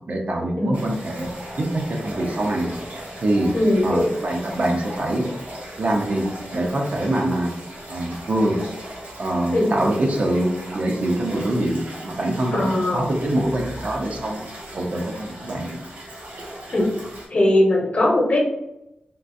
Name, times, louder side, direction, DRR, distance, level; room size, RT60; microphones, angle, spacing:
voice 1, 0.1-1.3 1.6-2.7 3.2-3.5 3.8-5.3 5.8-6.2 6.5-7.5 7.9-8.6 9.2-14.5 14.7-15.7, right 1 dB, 55° right, 1 dB, 0.6 m, -24 dB
sound 1, 0.7-17.3, right 1 dB, 75° right, 1.1 m, -37 dB
voice 2, 3.5-4.0 9.5-9.7 12.5-13.0 16.7-16.9 17.3-18.4, left 1 dB, 45° left, -1 dB, 0.8 m, -19 dB
3.7 x 2.4 x 2.6 m, 0.86 s
wide cardioid pair, 100°, 3 cm